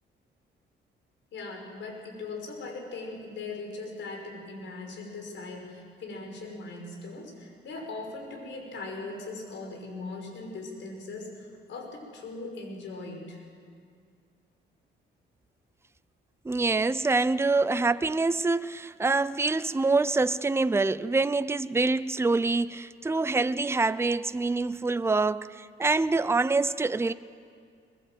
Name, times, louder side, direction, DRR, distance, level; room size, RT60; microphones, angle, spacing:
voice 1, 1.3-13.4, left 3 dB, 70° left, 5.8 m, -39 dB
voice 2, 16.4-25.5 25.8-27.1, right 3 dB, 15° right, 0.6 m, -25 dB
22.0 x 22.0 x 7.8 m
cardioid pair, 90°, 20 cm